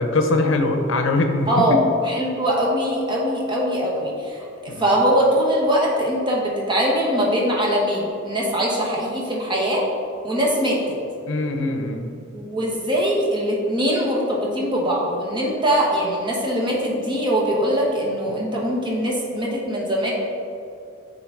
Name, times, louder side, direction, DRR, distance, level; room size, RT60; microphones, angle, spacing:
voice 1, 0.0-1.6 4.7-4.9 11.3-12.1, left 2 dB, 65° left, 5 dB, 0.7 m, -22 dB
voice 2, 2.0-9.8 10.2-10.8 12.3-20.1, equal, 25° right, -3 dB, 1.2 m, -22 dB
9.0 x 3.8 x 3.8 m, 2.6 s
head